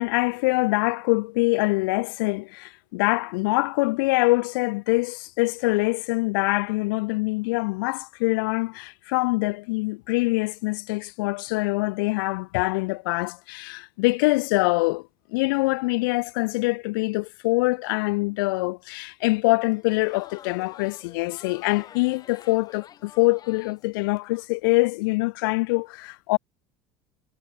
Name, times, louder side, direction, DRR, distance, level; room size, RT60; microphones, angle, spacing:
voice 1, 0.0-26.4, left 25 dB, 85° left, 2.5 m, -24 dB
Crowd, 19.6-24.5, left 9 dB, 35° left, 7.9 m, -48 dB
cardioid pair, 135°, 11 cm